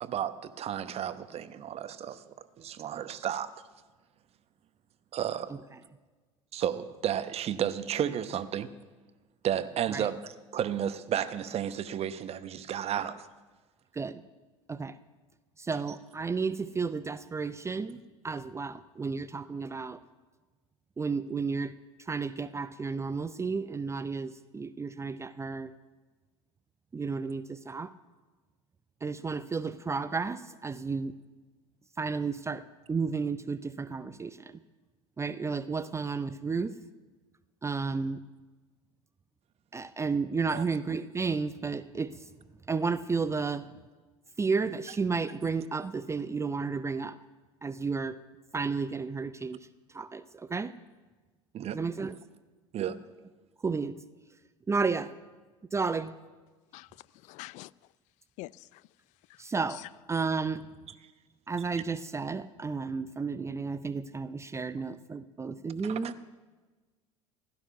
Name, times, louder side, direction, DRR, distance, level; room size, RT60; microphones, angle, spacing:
voice 1, 0.0-2.2 2.6-3.5 5.1-5.5 6.5-8.7 9.4-13.3 40.5-40.6 51.5-51.8 52.7-53.0 65.8-66.1, right 10 dB, 40° right, 0.9 m, -32 dB
voice 2, 15.6-18.0 18.2-20.0 21.0-21.7 22.0-25.7 26.9-27.9 29.0-31.1 32.0-32.6 32.9-34.6 35.2-36.7 37.6-38.2 39.7-42.3 42.7-43.7 44.4-47.2 47.6-48.2 48.5-49.7 49.9-50.7 51.7-52.2 53.6-54.0 54.7-55.1 55.7-56.1 59.4-59.8 60.1-60.6 61.5-66.2, right 4 dB, 15° right, 0.5 m, -32 dB
voice 3, 56.7-57.7 58.4-58.9 59.3-59.4 59.7-59.9, left 19 dB, 45° left, 0.4 m, -46 dB
16.0 x 11.5 x 5.7 m
figure-of-eight pair, 70°, 17 cm